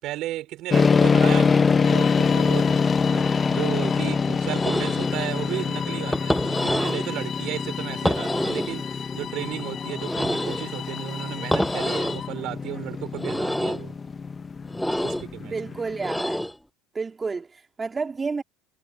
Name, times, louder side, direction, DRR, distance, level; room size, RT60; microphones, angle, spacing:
voice 1, 0.0-2.8 3.1-13.9 15.0-15.8, right 15 dB, 55° right, 4.5 m, -34 dB
sound 1, 0.7-16.2, left 5 dB, 25° left, 0.9 m, -25 dB
Bowed string instrument, 1.8-12.4, left 9 dB, 40° left, 3.5 m, -37 dB
sound 2, 4.5-5.1 6.1-7.1 8.0-8.8 10.0-10.7 11.5-12.2 13.1-13.8 14.7-15.3 16.0-16.5, equal, ahead, 7.4 m, -26 dB
voice 2, 15.4-16.4 16.9-18.4, right 4 dB, 20° right, 2.3 m, -30 dB
supercardioid pair, 100°, 0 cm